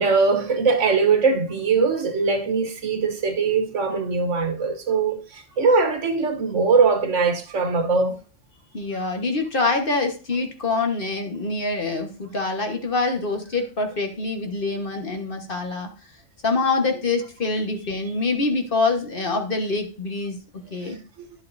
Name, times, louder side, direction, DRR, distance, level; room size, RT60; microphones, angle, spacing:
voice 1, 0.0-8.2 20.9-21.3, right 4 dB, 75° right, 1.3 m, -21 dB
voice 2, 8.7-15.9 16.4-20.4 20.7-21.0, left 3 dB, 45° left, 1.5 m, -25 dB
11.0 x 8.0 x 2.6 m
omnidirectional pair, 1.3 m